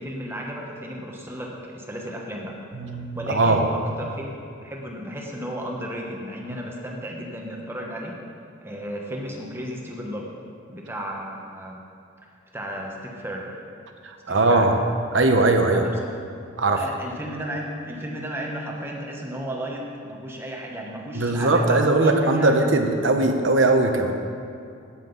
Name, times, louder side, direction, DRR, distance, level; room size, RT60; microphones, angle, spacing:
voice 1, 0.0-2.6 3.1-8.2 8.6-10.3 10.7-11.8 12.5-13.5 14.3-14.7 15.7-15.9 16.7-22.6, equal, 10° right, -1 dB, 1.1 m, -34 dB
voice 2, 2.8-3.6 14.0-14.8 15.1-15.9 16.6-16.8 21.1-24.1, right 2 dB, 65° right, 5 dB, 1.0 m, -20 dB
17.0 x 7.5 x 4.0 m, 2.5 s
head